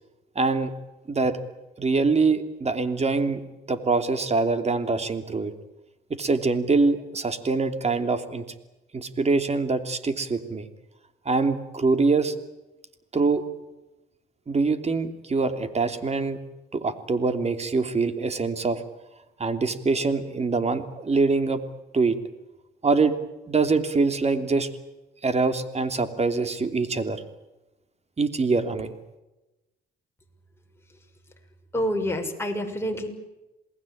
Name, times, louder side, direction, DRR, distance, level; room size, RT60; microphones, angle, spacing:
voice 1, 0.3-0.7 1.1-1.4 1.8-3.4 3.7-5.5 6.1-8.4 8.9-10.7 11.2-12.3 13.1-13.4 14.5-16.4 16.7-18.8 19.4-21.6 21.9-22.2 22.8-23.1 23.5-24.7 25.2-27.2 28.2-28.9, right 4 dB, 35° right, 9 dB, 3.2 m, -24 dB
voice 2, 31.7-33.1, equal, 10° left, 2 dB, 6.4 m, -27 dB
28.0 x 20.0 x 8.8 m, 1.0 s
cardioid pair, 90°, 20 cm